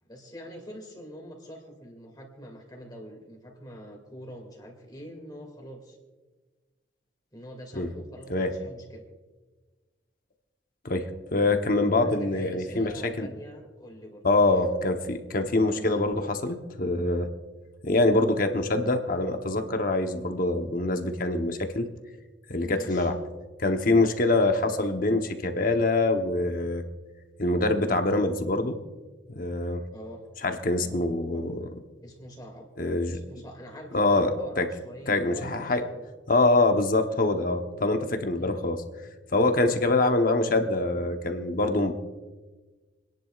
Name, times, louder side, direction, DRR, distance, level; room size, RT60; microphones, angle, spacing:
voice 1, 0.0-6.0 7.3-9.0 12.0-14.2 15.6-16.0 22.6-23.1 29.9-30.2 30.7-31.4 32.0-32.7 33.1-36.1 38.3-38.6, equal, 20° left, 1 dB, 2.2 m, -44 dB
voice 2, 10.8-12.9 13.2-13.3 14.2-17.3 17.8-21.9 22.5-23.1 23.6-26.8 27.4-28.8 29.3-29.8 30.4-31.7 32.8-33.2 33.9-34.7 35.1-35.8 36.3-38.8 39.3-41.9, left 2 dB, 45° left, 6 dB, 0.9 m, -24 dB
28.5 x 10.5 x 2.4 m, 1.3 s
head